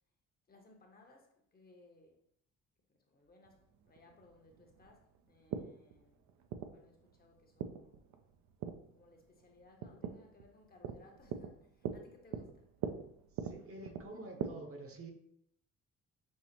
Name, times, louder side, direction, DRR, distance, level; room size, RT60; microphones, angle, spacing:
voice 1, 0.5-2.3 2.9-6.2 6.7-8.1 8.9-12.7, left 3 dB, 30° left, 0.8 m, -63 dB
sound 1, 3.5-14.5, right 8 dB, 65° right, 0.4 m, -44 dB
voice 2, 13.3-15.1, right 2 dB, 50° right, 0.9 m, -48 dB
5.4 x 2.0 x 2.9 m
cardioid pair, 90°, 30 cm